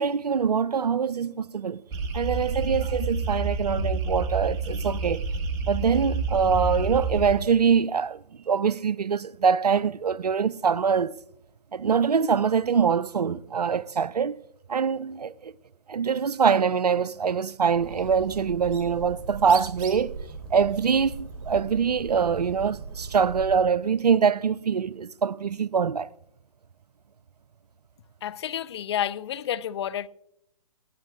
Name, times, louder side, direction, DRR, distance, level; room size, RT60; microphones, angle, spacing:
voice 1, 0.0-1.8 2.1-5.2 5.7-11.1 11.7-14.3 14.7-15.5 15.9-20.2 20.5-26.1, right 6 dB, 90° right, 0.5 m, -24 dB
sound 1, 1.9-7.4, right 3 dB, 20° right, 1.5 m, -29 dB
Bird, 17.7-23.7, right 4 dB, 35° right, 3.1 m, -38 dB
voice 2, 28.2-30.1, left 10 dB, 45° left, 0.5 m, -30 dB
20.0 x 15.5 x 2.4 m
figure-of-eight pair, 135°, 20 cm